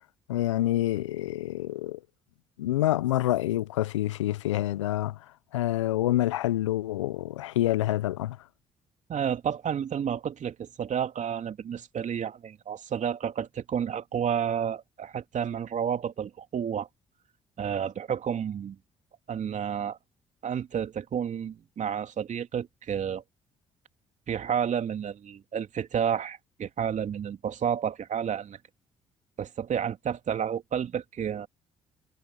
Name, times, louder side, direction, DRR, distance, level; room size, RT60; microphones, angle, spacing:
voice 1, 0.3-2.0 2.6-5.2 5.5-8.4, left 14 dB, 85° left, 1.1 m, -27 dB
voice 2, 9.1-16.9 17.6-18.8 19.3-20.0 20.4-23.2 24.3-28.6 29.4-31.5, right 8 dB, 55° right, 2.9 m, -31 dB
hypercardioid pair, 40°, 15 cm